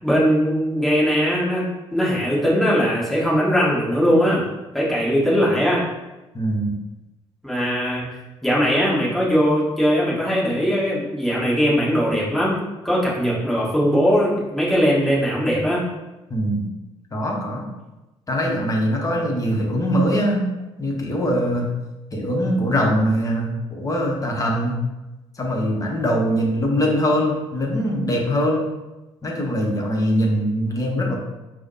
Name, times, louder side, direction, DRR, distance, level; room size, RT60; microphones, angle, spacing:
voice 1, 0.0-4.4 4.7-5.8 7.4-8.1 8.4-15.9, equal, ahead, -7 dB, 1.3 m, -20 dB
voice 2, 6.3-6.7 16.3-16.6 17.1-17.7 18.3-20.4 20.8-21.7 22.1-24.8 25.4-28.6 29.2-31.2, equal, 25° left, -1 dB, 0.8 m, -22 dB
4.8 x 2.0 x 2.7 m, 1.0 s
figure-of-eight pair, 50°, 15 cm